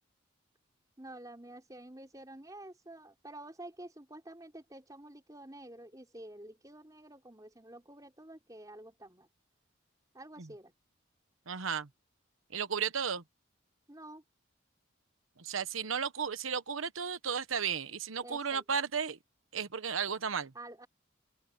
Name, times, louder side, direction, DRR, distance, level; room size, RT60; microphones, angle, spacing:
voice 1, 1.0-9.3 10.1-10.7 13.9-14.2 18.2-18.8 20.5-20.9, right 1 dB, 20° right, 4.0 m, -49 dB
voice 2, 11.5-11.9 12.5-13.2 15.4-19.2 19.5-20.5, right 6 dB, 90° right, 1.1 m, -34 dB
open air
head